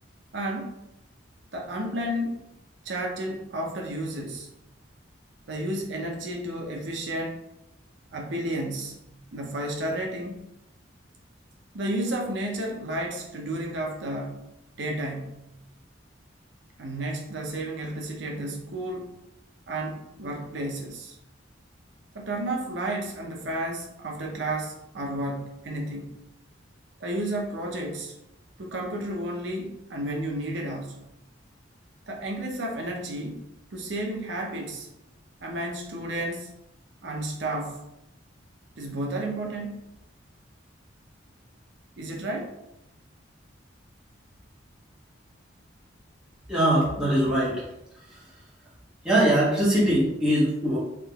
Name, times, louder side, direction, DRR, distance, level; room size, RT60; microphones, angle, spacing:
voice 1, 0.3-0.8 1.5-2.4 2.8-4.5 5.5-7.5 8.1-10.4 11.7-14.5 14.7-15.5 16.8-19.1 19.7-21.2 22.1-26.1 27.0-28.2 28.6-31.0 32.1-34.9 35.4-36.6 37.0-37.8 38.8-39.8 42.0-42.6, right 1 dB, 70° right, 1 dB, 0.6 m, -32 dB
voice 2, 46.5-47.6 49.0-50.8, right 1 dB, 5° right, -9 dB, 1.3 m, -22 dB
3.6 x 2.8 x 3.4 m, 0.85 s
head